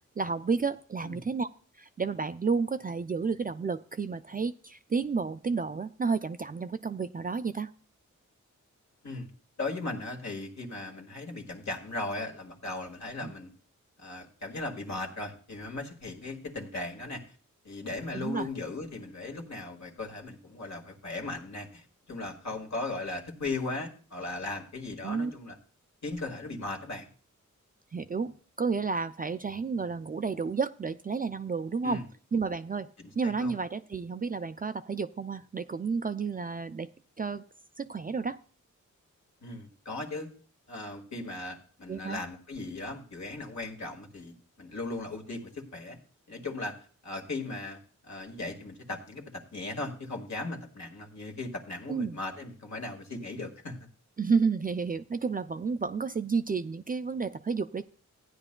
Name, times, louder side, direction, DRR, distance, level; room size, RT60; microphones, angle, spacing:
voice 1, 0.2-1.5 1.8-7.7 13.2-13.3 18.1-18.5 25.0-25.3 27.9-32.0 32.3-32.9 33.2-36.9 37.2-37.4 37.8-38.4 41.9-42.2 51.9-52.2 54.2-57.8, right 5 dB, 30° right, 10 dB, 0.4 m, -31 dB
voice 2, 9.6-13.5 14.0-17.2 17.6-25.6 26.0-27.1 31.8-32.0 33.0-33.6 39.4-40.3 40.7-46.0 46.3-46.7 47.0-53.9, left 2 dB, 60° left, 2 dB, 1.8 m, -37 dB
15.5 x 9.7 x 2.2 m, 0.43 s
cardioid pair, 70°, 31 cm